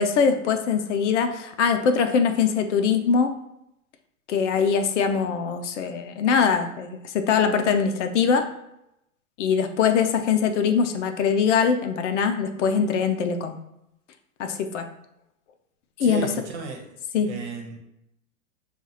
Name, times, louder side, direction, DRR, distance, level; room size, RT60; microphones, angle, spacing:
voice 1, 0.0-3.3 4.3-8.5 9.4-13.6 14.4-14.9 16.0-16.3 17.1-17.3, left 6 dB, 55° left, 7 dB, 0.6 m, -22 dB
voice 2, 16.0-17.8, right 3 dB, 50° right, 2 dB, 1.2 m, -35 dB
7.1 x 2.4 x 2.9 m, 0.81 s
hypercardioid pair, 120°, 45 cm